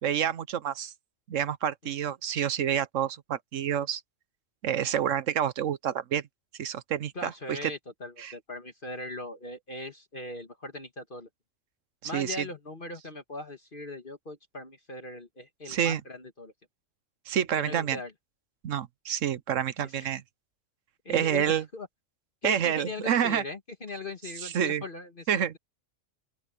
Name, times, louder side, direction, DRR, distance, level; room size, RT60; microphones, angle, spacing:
voice 1, 0.0-0.9 1.3-4.0 4.6-6.2 6.6-7.7 8.2-8.3 12.1-12.4 15.7-16.0 17.3-18.0 18.6-20.2 21.1-21.6 22.4-23.4 24.4-24.8 25.3-25.5, right 9 dB, 75° right, 1.2 m, -28 dB
voice 2, 7.2-11.3 12.0-16.5 17.6-18.1 19.8-20.1 21.1-21.9 22.4-25.6, left 2 dB, 45° left, 2.0 m, -40 dB
open air
omnidirectional pair, 1.3 m